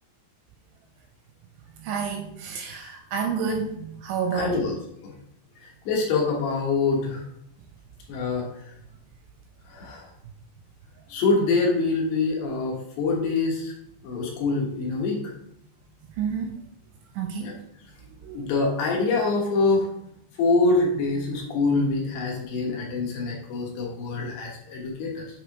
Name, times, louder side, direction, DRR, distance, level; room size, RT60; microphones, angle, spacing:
voice 1, 1.8-4.6 16.2-16.5 17.2-17.5 18.2-18.4, right 6 dB, 80° right, 3 dB, 2.8 m, -29 dB
voice 2, 4.3-4.8 5.0-5.1 5.6-7.2 8.1-8.5 9.7-10.1 11.1-13.7 14.0-15.3 17.4-17.5 18.3-19.9 20.4-25.2, left 3 dB, 70° left, -1 dB, 2.8 m, -25 dB
7.4 x 3.5 x 4.6 m, 0.73 s
omnidirectional pair, 5.7 m